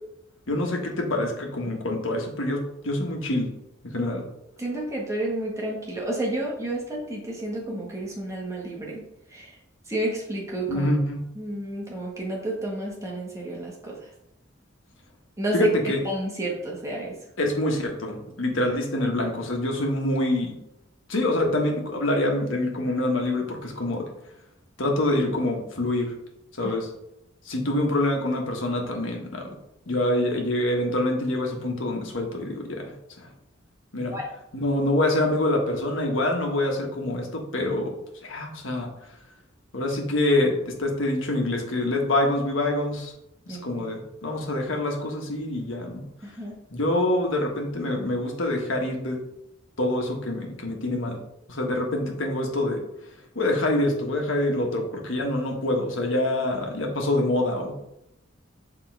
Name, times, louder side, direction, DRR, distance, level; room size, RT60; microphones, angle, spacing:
voice 1, 0.5-3.5 3.9-4.2 10.7-11.2 15.5-16.0 17.4-20.6 21.1-24.0 24.8-26.1 26.6-26.9 27.4-29.5 29.9-32.9 33.2-33.3 33.9-34.2 34.5-37.9 38.2-38.9 39.7-40.5 40.8-43.1 43.5-46.0 46.7-49.2 49.8-51.2 51.5-52.8 53.3-57.7, left 1 dB, 85° left, 1 dB, 1.4 m, -25 dB
voice 2, 4.6-9.0 9.3-9.6 9.9-10.9 11.3-14.1 15.4-15.7 16.0-17.2 26.6-26.8 34.0-34.3 43.5-43.8 46.2-46.5, right 1 dB, 15° right, -2 dB, 1.5 m, -31 dB
6.2 x 3.8 x 4.7 m, 0.83 s
head